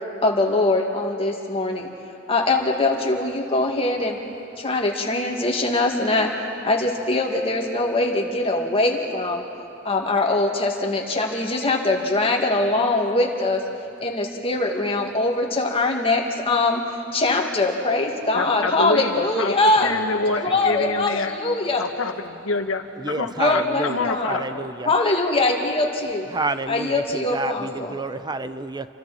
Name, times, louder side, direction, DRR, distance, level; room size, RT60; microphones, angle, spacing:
voice 1, 0.2-1.9 2.3-4.2 4.6-6.3 6.6-9.4 9.8-13.6 14.0-16.8 17.1-19.9 20.4-21.8 23.4-24.4 24.9-26.3 26.7-27.9, left 2 dB, 30° left, 0 dB, 2.3 m, -22 dB
voice 2, 18.3-21.3 21.8-24.6, left 3 dB, 85° left, 6 dB, 1.4 m, -27 dB
voice 3, 20.5-21.0 23.0-24.9 26.3-28.9, right 3 dB, 20° right, 11 dB, 0.7 m, -30 dB
29.5 x 25.0 x 4.4 m, 2.6 s
head